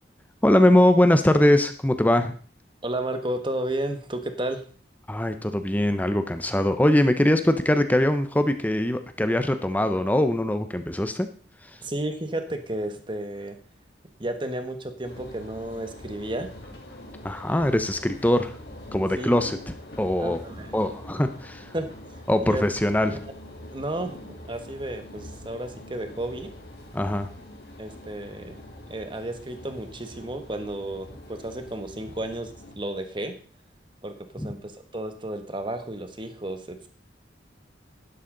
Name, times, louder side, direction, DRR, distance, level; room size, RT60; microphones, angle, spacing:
voice 1, 0.4-2.3 5.1-11.3 17.2-18.5 18.9-19.6 20.0-20.4 20.7-21.6 22.3-23.2 26.9-27.3 34.4-34.5, left 1 dB, 10° left, 9 dB, 0.7 m, -22 dB
voice 2, 2.8-4.6 11.8-13.6 14.2-16.5 19.2-19.3 20.2-20.8 21.7-22.6 23.1-23.2 23.7-26.5 27.8-28.6 28.9-33.3 34.0-36.9, right 1 dB, 25° right, 7 dB, 1.4 m, -32 dB
sound 1, 15.0-32.8, left 1 dB, 65° left, 3.3 m, -44 dB
11.0 x 11.0 x 3.9 m, 0.41 s
head